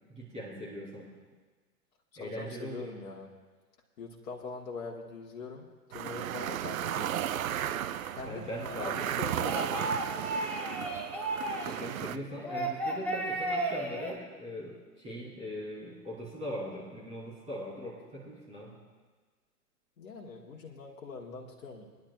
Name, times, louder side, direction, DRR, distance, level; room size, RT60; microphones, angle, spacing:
voice 1, 0.1-1.1 2.2-2.9 8.2-9.1 11.7-18.8, equal, 15° right, -7 dB, 3.9 m, -40 dB
voice 2, 2.2-3.3 4.0-7.2 8.1-10.0 20.0-21.9, left 4 dB, 60° left, -1 dB, 1.6 m, -42 dB
sound 1, 5.9-12.2, right 10 dB, 60° right, 0.6 m, -34 dB
sound 2, 8.9-11.8 12.4-14.1, right 1 dB, 5° left, 1.1 m, -34 dB
25.0 x 10.5 x 2.4 m, 1.4 s
figure-of-eight pair, 115°, 47 cm